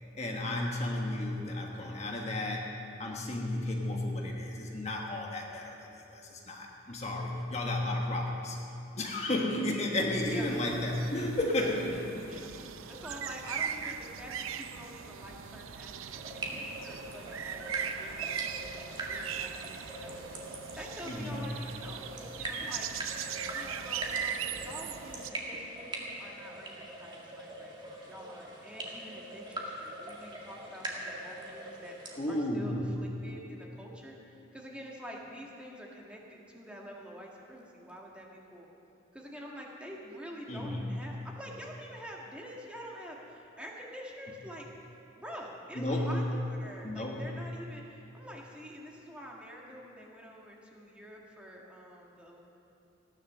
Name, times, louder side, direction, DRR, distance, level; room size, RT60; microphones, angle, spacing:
voice 1, 0.2-2.7 3.0-5.8 6.1-8.6 9.0-12.3 21.1-21.4 32.2-32.9 40.5-40.8 45.7-46.2 46.8-47.3, left 1 dB, 35° left, 0 dB, 1.4 m, -33 dB
sound 1, 10.1-25.3, right 8 dB, 85° right, 0.6 m, -40 dB
voice 2, 12.9-27.8 28.0-38.7 39.1-44.7 45.2-52.4, equal, 5° right, -2 dB, 1.6 m, -47 dB
sound 2, 16.1-32.2, right 1 dB, 25° right, 2.0 m, -42 dB
16.5 x 10.5 x 6.7 m, 2.8 s
head